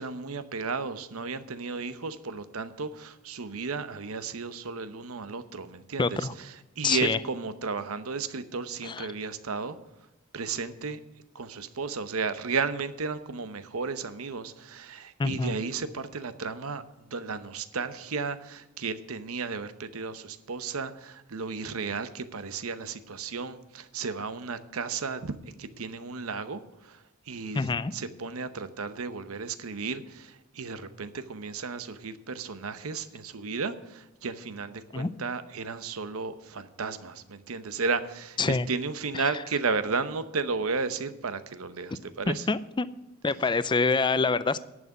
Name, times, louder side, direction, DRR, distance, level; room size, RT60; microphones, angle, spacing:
voice 1, 0.0-9.8 10.3-11.0 11.3-25.3 25.6-42.5, right 4 dB, 80° right, 12 dB, 0.8 m, -34 dB
voice 2, 6.0-6.3 6.8-7.2 8.8-9.1 15.2-15.5 27.5-27.9 34.9-35.1 38.4-38.7 42.3-42.9 43.2-44.6, left 4 dB, 20° left, 16 dB, 0.4 m, -26 dB
11.0 x 6.2 x 9.1 m, 0.98 s
head